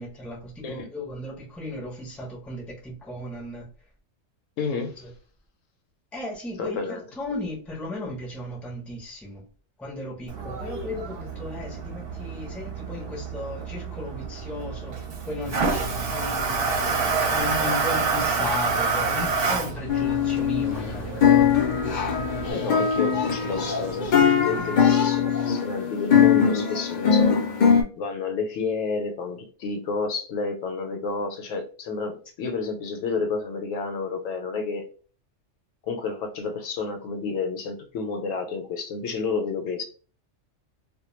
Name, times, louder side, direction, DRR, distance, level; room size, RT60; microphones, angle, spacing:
voice 1, 0.0-3.7 5.0-5.1 6.1-9.4 9.8-21.5, left 1 dB, ahead, 0.5 m, -36 dB
voice 2, 4.6-5.0 6.6-7.0 22.5-27.4 28.0-34.9 35.9-39.8, left 4 dB, 80° left, 0.9 m, -30 dB
Toilet flush, 10.3-22.5, right 4 dB, 55° right, 0.7 m, -28 dB
sound 1, 15.4-24.8, left 2 dB, 25° right, 0.9 m, -39 dB
sound 2, 19.9-20.9 21.2-27.8, left 7 dB, 60° left, 0.5 m, -21 dB
2.2 x 2.2 x 3.0 m
omnidirectional pair, 1.3 m